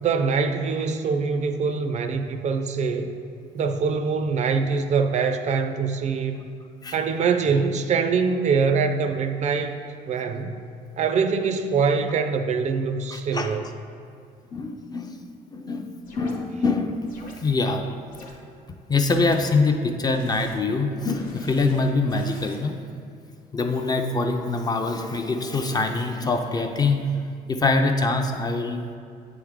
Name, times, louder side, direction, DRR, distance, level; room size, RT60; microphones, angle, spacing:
voice 1, 0.0-3.1 3.5-6.4 6.9-9.8 10.1-13.6, right 5 dB, 45° right, 6 dB, 0.4 m, -24 dB
voice 2, 13.1-13.5 14.5-15.2 15.5-17.1 17.4-17.8 18.9-22.8 23.5-27.1 27.5-28.8, left 3 dB, 25° left, 5 dB, 0.4 m, -24 dB
sound 1, 16.0-16.4 17.1-17.4 18.1-18.3 19.1-19.4 20.1-20.6 21.1-22.6, left 2 dB, 55° left, 1.0 m, -45 dB
7.8 x 3.5 x 3.5 m, 2.4 s
cardioid pair, 110°, 17 cm